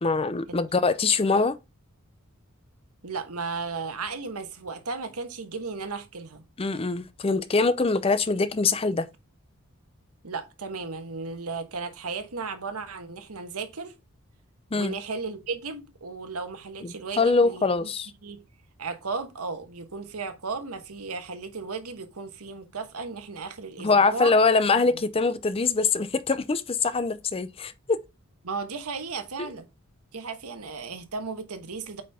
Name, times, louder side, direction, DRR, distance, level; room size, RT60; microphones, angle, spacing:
voice 1, 0.0-1.6 6.6-9.1 14.7-14.9 16.8-18.1 23.8-28.0, left 4 dB, 25° left, 0.5 m, -23 dB
voice 2, 3.0-6.4 10.2-13.9 14.7-17.9 18.2-18.4 18.8-24.3 24.6-25.0 28.4-29.7 30.1-32.0, right 4 dB, 85° right, 1.3 m, -35 dB
8.4 x 4.4 x 3.5 m
head